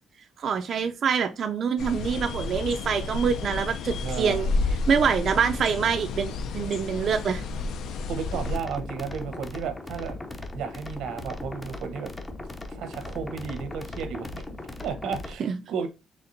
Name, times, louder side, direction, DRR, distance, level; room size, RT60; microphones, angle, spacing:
voice 1, 0.4-4.5 4.9-7.5 15.4-15.5, right 6 dB, 45° right, 0.3 m, -25 dB
sound 1, 1.8-8.6, left 3 dB, 70° left, 0.4 m, -31 dB
voice 2, 4.0-4.4 8.1-10.2 10.5-12.1 12.7-15.9, right 6 dB, 90° right, 0.8 m, -33 dB
sound 2, 8.3-15.3, left 2 dB, 15° left, 0.5 m, -38 dB
4.2 x 3.5 x 2.5 m
cardioid pair, 150°, 0 cm